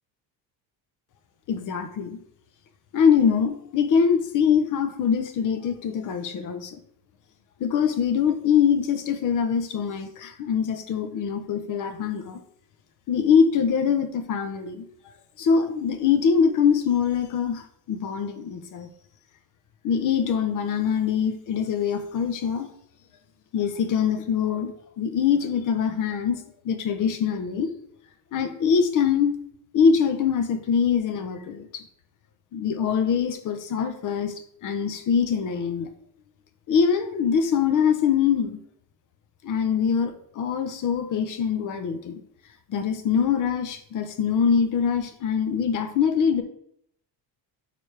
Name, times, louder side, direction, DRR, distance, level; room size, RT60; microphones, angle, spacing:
voice 1, 1.5-2.2 2.9-6.8 7.6-12.4 13.1-14.9 15.4-18.9 19.8-22.7 23.5-26.4 26.6-27.7 28.3-29.4 29.7-31.8 32.5-34.3 34.6-35.9 36.7-38.6 39.4-42.2 42.7-46.4, left 7 dB, 50° left, 9 dB, 0.9 m, -23 dB
11.0 x 4.2 x 3.4 m, 0.69 s
cardioid pair, 170°, 41 cm